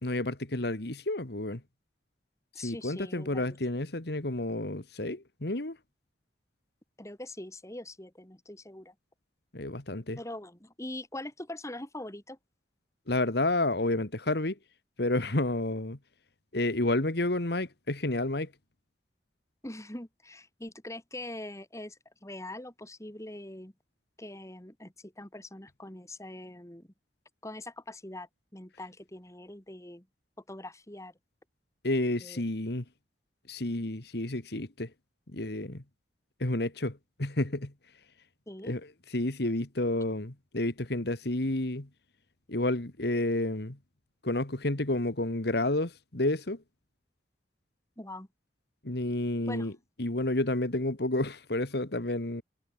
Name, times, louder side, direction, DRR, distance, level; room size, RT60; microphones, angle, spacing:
voice 1, 0.0-1.6 2.6-5.8 9.5-10.2 13.1-14.6 15.0-16.0 16.5-18.5 31.8-32.8 33.5-34.9 35.3-35.8 36.4-37.7 38.6-38.8 39.1-41.9 42.5-43.8 44.2-46.6 48.8-49.7 50.0-52.4, left 2 dB, 60° left, 2.0 m, -30 dB
voice 2, 2.5-3.4 7.0-8.9 10.2-12.4 19.6-23.7 24.2-26.9 27.4-30.1 30.5-31.1 32.2-32.4 38.5-38.7 48.0-48.3 49.5-49.8, left 1 dB, 15° left, 2.6 m, -43 dB
head